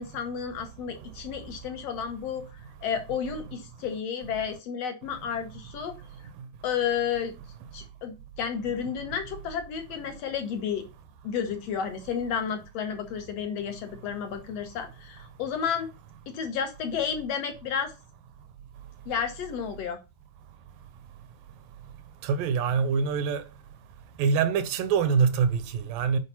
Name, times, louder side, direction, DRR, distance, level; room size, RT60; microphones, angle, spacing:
voice 1, 0.0-2.4 2.8-5.9 6.6-7.4 7.7-10.9 11.2-15.9 16.3-17.9 19.1-20.0, left 7 dB, 60° left, 1.9 m, -31 dB
voice 2, 22.2-23.4 24.2-26.2, right 6 dB, 85° right, 2.7 m, -24 dB
8.3 x 5.0 x 5.6 m
omnidirectional pair, 3.8 m